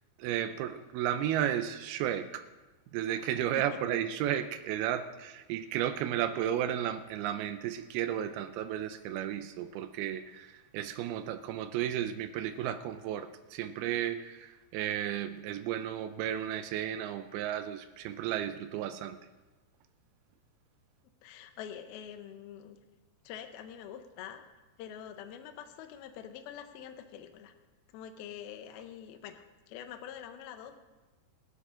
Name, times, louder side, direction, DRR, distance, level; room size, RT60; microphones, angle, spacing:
voice 1, 0.2-2.5 2.9-19.2, right 10 dB, 90° right, 9 dB, 2.2 m, -33 dB
voice 2, 21.2-22.8 23.2-24.5 24.8-27.5 27.9-30.8, left 9 dB, 75° left, 7 dB, 2.5 m, -45 dB
23.5 x 8.3 x 3.8 m, 1.2 s
omnidirectional pair, 5.1 m